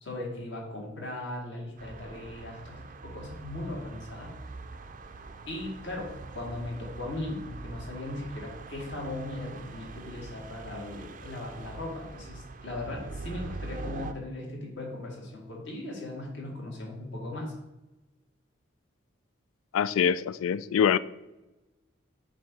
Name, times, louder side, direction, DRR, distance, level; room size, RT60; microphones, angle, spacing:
voice 1, 0.0-2.8 3.0-4.3 5.5-17.5, left 1 dB, 60° left, -1 dB, 1.8 m, -38 dB
sound 1, 1.8-14.1, right 3 dB, 40° right, 0.4 m, -43 dB
voice 2, 19.7-21.0, left 8 dB, 85° left, 17 dB, 0.3 m, -24 dB
7.6 x 2.7 x 5.9 m, 1.0 s
head